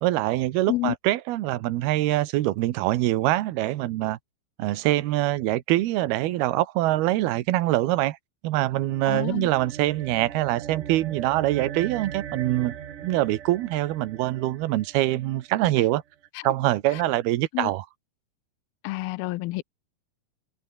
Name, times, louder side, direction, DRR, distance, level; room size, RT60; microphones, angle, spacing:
voice 1, 0.0-4.2 4.6-8.2 8.4-12.7 13.0-16.0 16.4-17.9, right 16 dB, 80° right, 3.1 m, -24 dB
sound 1, 8.7-15.4, right 9 dB, 60° right, 3.4 m, -39 dB
voice 2, 9.1-9.5 16.3-16.4 16.9-17.0 17.5-17.7 18.8-19.6, left 19 dB, 80° left, 2.6 m, -29 dB
open air
omnidirectional pair, 4.4 m